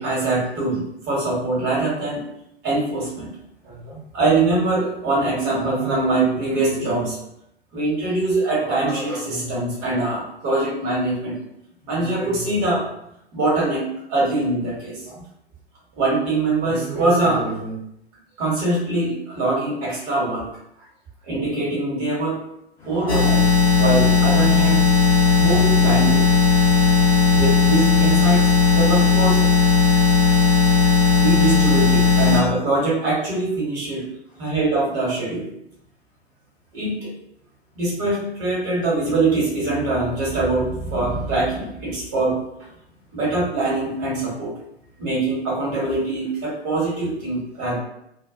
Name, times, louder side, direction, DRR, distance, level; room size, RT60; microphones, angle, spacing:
voice 1, 0.0-2.2 2.6-3.3 3.6-7.2 7.7-11.4 11.8-12.9 13.3-15.2 16.0-17.7 18.4-20.4 21.3-22.4 22.9-23.5 23.8-24.8 25.4-26.2 27.3-29.5 31.2-34.0 34.4-35.5 36.7-37.1 37.7-42.4 43.1-44.5 45.0-47.8, right 2 dB, 30° right, -6 dB, 1.2 m, -23 dB
voice 2, 22.8-23.2 25.0-25.5 26.5-27.4 29.8-31.1, left 3 dB, 5° left, -6 dB, 0.4 m, -46 dB
sound 1, 23.1-32.4, left 5 dB, 65° left, 0.8 m, -16 dB
2.2 x 2.2 x 2.5 m, 0.78 s
figure-of-eight pair, 105°, 33 cm